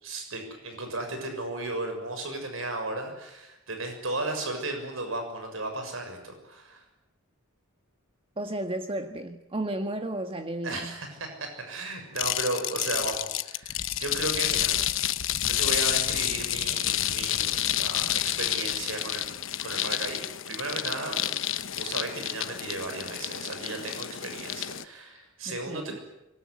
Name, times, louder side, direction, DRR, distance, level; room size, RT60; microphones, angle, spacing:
voice 1, 0.0-6.8 10.6-15.0 15.5-19.3 19.6-21.3 21.8-26.0, right 2 dB, 70° right, 5 dB, 6.9 m, -35 dB
voice 2, 8.4-10.9 25.4-26.0, right 1 dB, 25° right, 6 dB, 1.6 m, -33 dB
sound 1, 12.2-24.8, left 12 dB, 65° left, 1.1 m, -29 dB
25.5 x 23.0 x 9.8 m, 0.92 s
head